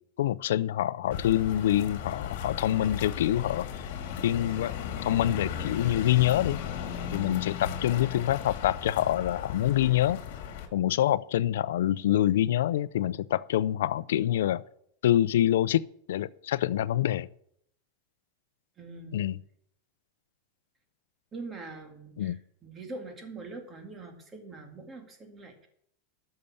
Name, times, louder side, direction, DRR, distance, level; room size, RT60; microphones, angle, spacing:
voice 1, 0.2-3.9 4.2-4.7 5.0-6.6 7.1-10.2 10.7-14.6 15.0-15.8 16.1-17.3 19.1-19.4 22.2-22.4, left 12 dB, 85° left, 0.5 m, -26 dB
sound 1, 1.1-10.7, left 8 dB, 60° left, 2.0 m, -36 dB
voice 2, 18.8-19.3 21.3-25.7, right 3 dB, 20° right, 2.1 m, -43 dB
12.5 x 6.7 x 7.0 m
supercardioid pair, 160°, 0 cm